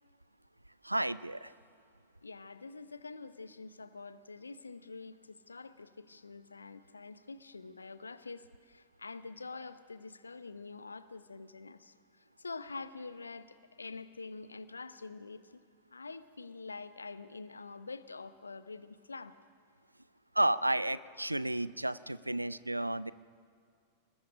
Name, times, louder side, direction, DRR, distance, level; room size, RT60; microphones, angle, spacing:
voice 1, 0.8-1.5 20.3-23.1, right 1 dB, 85° right, 18 dB, 0.5 m, -32 dB
voice 2, 2.2-11.9 12.4-15.6 15.9-19.3, left 4 dB, 80° left, 14 dB, 0.8 m, -46 dB
29.5 x 20.0 x 5.1 m, 2.2 s
figure-of-eight pair, 90°, 0 cm